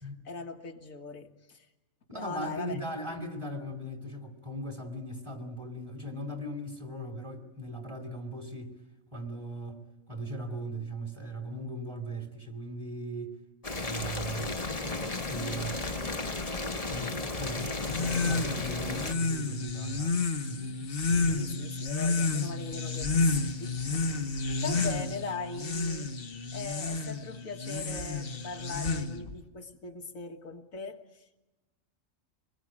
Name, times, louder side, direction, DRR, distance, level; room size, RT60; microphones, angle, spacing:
voice 1, 0.2-1.7 2.1-2.8 21.3-24.1 24.6-26.1 26.5-31.2, left 4 dB, 75° left, 2.1 m, -40 dB
voice 2, 2.1-8.7 9.1-9.8 10.1-13.3 13.8-14.5 14.9-16.2 16.9-21.4, right 1 dB, 20° right, 2.7 m, -39 dB
Boiling, 13.6-19.1, left 2 dB, 30° left, 1.4 m, -34 dB
sound 1, 17.8-29.4, left 3 dB, 45° left, 1.4 m, -31 dB
25.5 x 21.0 x 8.8 m
omnidirectional pair, 1.4 m